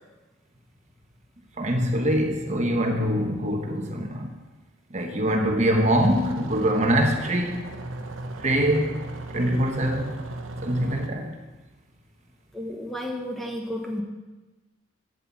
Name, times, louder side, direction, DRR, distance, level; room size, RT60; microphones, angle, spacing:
voice 1, 1.6-4.3 4.9-7.6 8.4-9.0 9.3-10.2 10.6-11.3, equal, 35° right, 1.1 m, -23 dB
sound 1, 6.0-11.1, right 2 dB, 85° right, 1.0 m, -36 dB
voice 2, 12.5-14.0, left 1 dB, ahead, 1.1 m, -32 dB
9.3 x 7.9 x 7.2 m
head